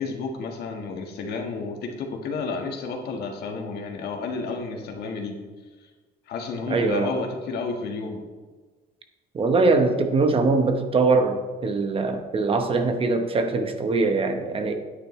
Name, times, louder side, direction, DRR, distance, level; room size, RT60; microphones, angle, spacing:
voice 1, 0.0-5.3 6.3-8.2, left 4 dB, 70° left, 2 dB, 1.5 m, -31 dB
voice 2, 6.7-7.1 9.3-14.7, right 3 dB, 30° right, 6 dB, 0.9 m, -22 dB
10.0 x 8.8 x 3.2 m, 1.4 s
cardioid pair, 130°, 17 cm